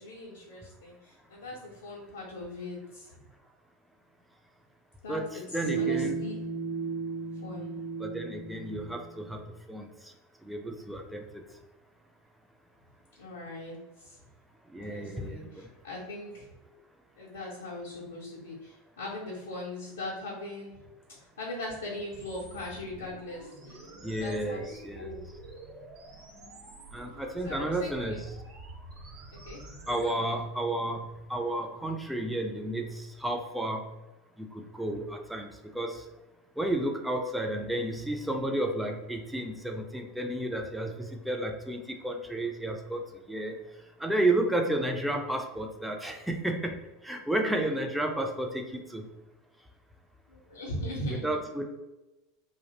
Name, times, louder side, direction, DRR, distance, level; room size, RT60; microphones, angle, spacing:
voice 1, 0.0-3.2 5.0-6.4 7.4-7.7 13.2-14.2 14.8-16.5 17.2-20.8 21.2-23.8 24.2-25.2 27.4-28.2 29.5-30.3 50.3-51.4, left 1 dB, 75° left, -6 dB, 0.5 m, -40 dB
voice 2, 5.1-6.2 8.0-9.4 9.7-9.9 10.4-11.4 14.7-15.5 24.0-25.1 26.9-28.3 29.9-33.8 34.4-36.0 36.6-43.0 43.3-43.5 44.0-49.1 51.2-51.7, right 1 dB, 5° right, 3 dB, 0.4 m, -32 dB
sound 1, 5.6-9.5, right 5 dB, 85° right, 0.4 m, -34 dB
sound 2, 22.1-30.1, right 2 dB, 45° right, 0.8 m, -47 dB
2.3 x 2.0 x 2.8 m, 1.0 s
figure-of-eight pair, 80°, 0 cm